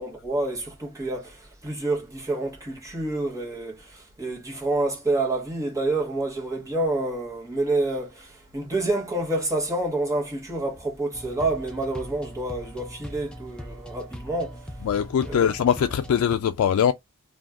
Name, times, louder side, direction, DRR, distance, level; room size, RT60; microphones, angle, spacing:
voice 1, 0.0-14.6 15.2-15.5, right 2 dB, 15° right, 0.9 m, -28 dB
sound 1, 11.1-16.4, equal, 5° left, 0.4 m, -40 dB
voice 2, 14.9-16.9, left 8 dB, 80° left, 0.3 m, -22 dB
2.5 x 2.2 x 3.4 m
head